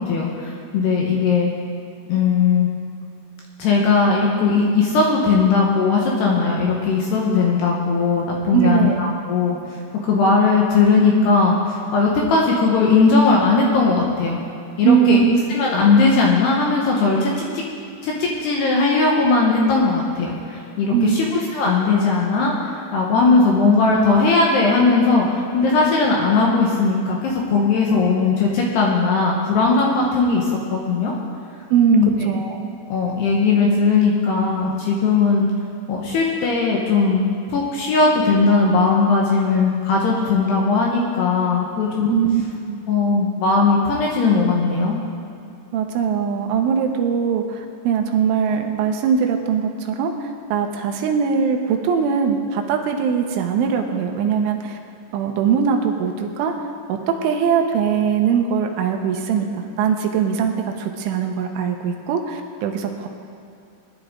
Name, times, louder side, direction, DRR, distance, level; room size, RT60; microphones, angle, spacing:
voice 1, 0.0-1.5 2.1-2.7 3.6-14.4 14.8-15.2 15.5-17.3 18.0-31.1 31.9-32.1 32.9-35.5 35.9-42.1 42.9-45.0, left 4 dB, 70° left, -2 dB, 2.8 m, -18 dB
voice 2, 8.5-9.0 14.8-15.3 20.9-21.3 31.7-32.7 42.1-42.8 45.7-54.8 55.1-56.5 56.9-63.1, right 7 dB, 80° right, 3 dB, 3.2 m, -21 dB
20.0 x 11.0 x 3.8 m, 2.6 s
omnidirectional pair, 5.8 m